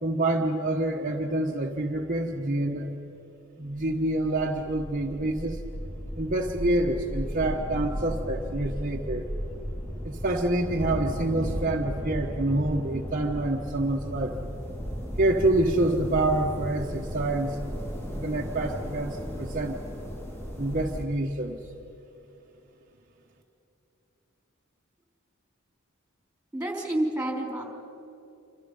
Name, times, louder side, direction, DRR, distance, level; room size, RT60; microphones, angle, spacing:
voice 1, 0.0-2.9 3.6-5.6 6.2-9.3 10.0-14.4 15.2-17.6 18.1-19.8 20.6-21.6, right 2 dB, 40° right, 0 dB, 1.2 m, -27 dB
sound 1, 3.7-21.0, equal, 15° left, 3.3 m, -35 dB
voice 2, 26.5-27.6, right 1 dB, 5° right, 1 dB, 3.8 m, -29 dB
27.5 x 26.5 x 5.5 m, 3.0 s
head